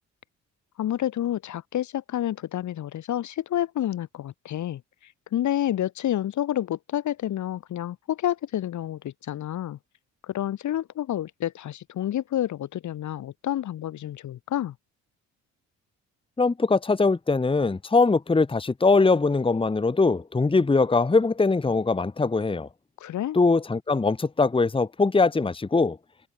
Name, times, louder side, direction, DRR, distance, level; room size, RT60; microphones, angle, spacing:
voice 1, 0.8-4.8 5.3-9.8 10.3-14.7 23.0-23.4, left 12 dB, 70° left, 3.0 m, -29 dB
voice 2, 16.4-22.7 23.3-26.0, left 3 dB, 15° left, 1.3 m, -22 dB
cardioid pair, 90°, 30 cm